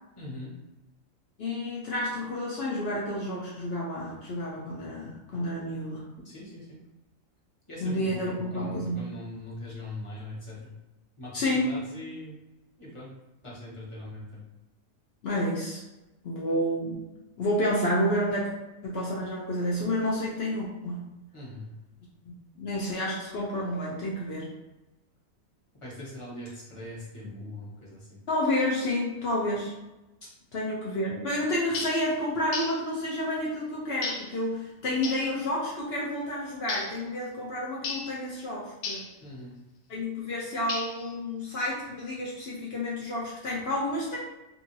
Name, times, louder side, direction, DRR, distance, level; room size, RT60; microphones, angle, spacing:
voice 1, 0.2-0.5 6.2-6.8 7.7-10.6 11.2-12.4 12.8-13.1 13.4-14.4 21.3-21.6 25.8-28.2 39.2-39.5, left 1 dB, 25° left, -7 dB, 0.9 m, -41 dB
voice 2, 1.4-6.0 7.8-9.1 11.3-11.7 15.2-15.8 16.2-17.0 17.4-18.5 18.8-21.1 22.6-24.5 27.4-27.5 28.3-29.7 30.5-39.0 39.9-44.2, left 1 dB, 60° left, -5 dB, 0.7 m, -30 dB
sound 1, 31.7-32.0 32.5-32.8 34.0-34.3 35.0-35.3 36.7-37.0 37.8-38.1 38.8-39.1 40.7-41.1, left 4 dB, 85° left, 1.0 m, -34 dB
2.7 x 2.7 x 2.7 m, 1.0 s
omnidirectional pair, 1.4 m